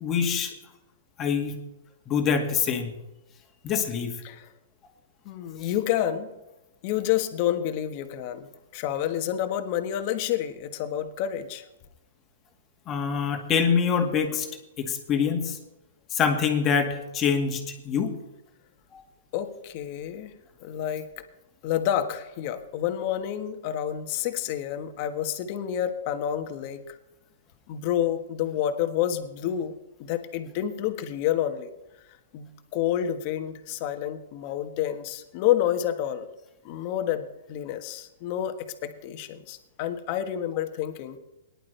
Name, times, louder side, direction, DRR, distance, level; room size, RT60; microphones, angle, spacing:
voice 1, 0.0-0.5 1.2-1.5 2.1-2.9 3.6-4.1 12.9-14.5 14.8-15.6 16.1-18.1, left 6 dB, 25° left, 4 dB, 2.0 m, -25 dB
voice 2, 5.2-6.3 6.8-11.6 19.3-20.3 20.6-21.2 21.6-26.8 27.7-29.7 30.1-31.7 32.3-36.3 36.6-41.2, left 11 dB, 40° left, 8 dB, 1.4 m, -29 dB
18.5 x 11.0 x 3.4 m, 0.97 s
hypercardioid pair, 145°, 0 cm